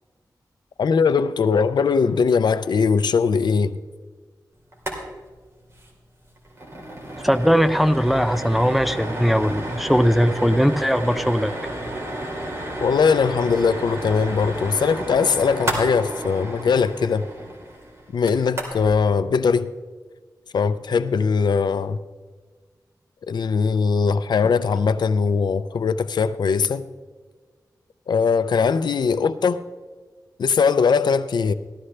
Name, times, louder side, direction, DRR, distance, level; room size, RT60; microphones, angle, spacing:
voice 1, 0.8-3.8 12.8-17.3 18.1-19.7 20.5-22.0 23.3-26.8 28.1-29.6 30.4-31.5, left 5 dB, 90° left, 0.5 m, -20 dB
sound 1, 4.7-5.0 5.3-5.4 5.7-5.9 6.2-18.9, right 1 dB, 40° right, 2.7 m, -32 dB
voice 2, 7.2-11.5, equal, ahead, 0.5 m, -19 dB
15.0 x 13.0 x 3.3 m
wide cardioid pair, 115°, 7 cm